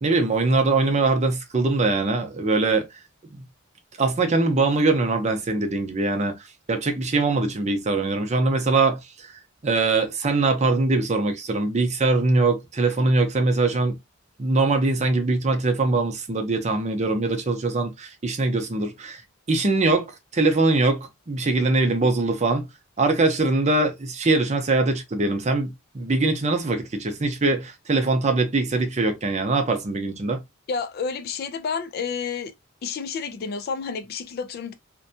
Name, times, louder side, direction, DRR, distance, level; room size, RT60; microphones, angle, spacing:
voice 1, 0.0-2.9 3.3-3.4 4.0-6.3 6.7-9.3 9.6-14.0 14.4-19.2 19.5-22.7 23.0-30.4, right 3 dB, 35° right, 0.6 m, -22 dB
voice 2, 30.7-32.5 32.8-34.7, left 5 dB, 50° left, 0.3 m, -30 dB
2.6 x 2.2 x 2.6 m
head